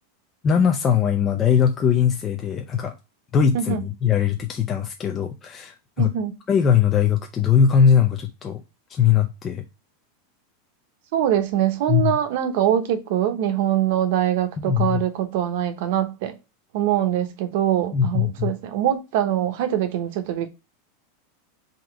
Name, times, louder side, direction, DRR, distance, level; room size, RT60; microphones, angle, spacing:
voice 1, 0.4-2.9 3.3-6.1 6.5-8.6 8.9-9.6 11.9-12.2 14.6-15.0 17.9-18.5, left 7 dB, 20° left, 0.4 m, -20 dB
voice 2, 6.0-6.3 11.1-16.3 16.7-20.5, right 11 dB, 55° right, 0.8 m, -23 dB
3.8 x 2.9 x 4.5 m
supercardioid pair, 170°, 0 cm